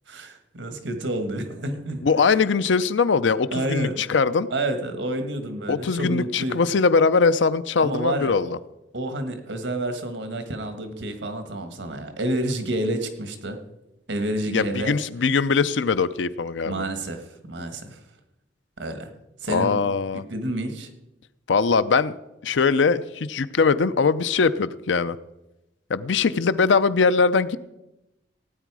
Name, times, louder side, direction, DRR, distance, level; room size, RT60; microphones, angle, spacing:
voice 1, 0.1-2.3 3.5-4.0 4.5-6.6 7.8-8.6 8.9-13.6 14.1-14.9 16.6-18.0 18.8-19.1 19.4-19.8 20.1-20.9, right 1 dB, 90° right, 7 dB, 1.6 m, -29 dB
voice 2, 2.0-4.5 5.7-8.6 14.5-16.9 19.5-20.2 21.5-22.1 22.4-25.2 25.9-27.6, left 4 dB, 85° left, 15 dB, 0.6 m, -21 dB
17.0 x 9.3 x 4.8 m, 0.93 s
head